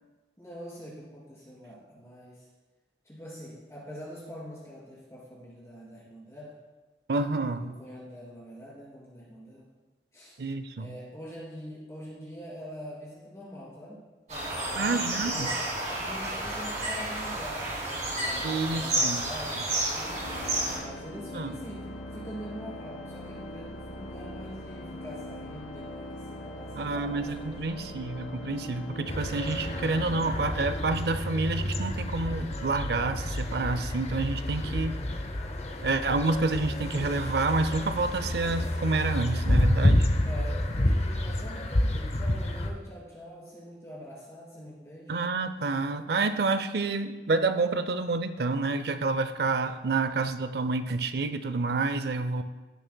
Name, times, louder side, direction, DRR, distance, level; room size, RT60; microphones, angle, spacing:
voice 1, 0.4-2.5 3.0-6.6 7.4-9.7 10.1-10.4 10.8-15.7 16.0-27.6 40.2-45.2, equal, 15° left, -7 dB, 3.2 m, -44 dB
voice 2, 7.1-7.7 10.4-10.9 14.8-15.5 18.4-19.2 21.3-21.5 26.8-35.0 35.8-40.1 45.1-52.4, right 3 dB, 60° right, 11 dB, 0.5 m, -28 dB
sound 1, 14.3-20.8, right 1 dB, 40° right, 2.7 m, -31 dB
Organ, 19.9-31.7, left 1 dB, 90° left, 1.5 m, -41 dB
sound 2, 29.1-42.7, left 1 dB, 35° left, 0.6 m, -29 dB
17.0 x 6.5 x 2.2 m, 1.2 s
head